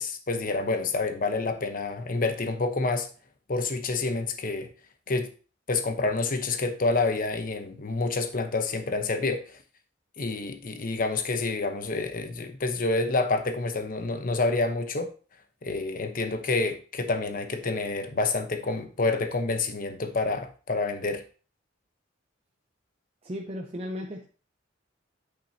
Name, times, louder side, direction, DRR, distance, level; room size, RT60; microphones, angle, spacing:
voice 1, 0.0-3.1 3.5-4.7 5.1-5.3 5.7-9.4 10.2-15.1 15.6-21.2, left 3 dB, 45° left, 0.9 m, -28 dB
voice 2, 23.2-24.3, equal, 30° right, 0.7 m, -35 dB
8.5 x 6.2 x 2.8 m
head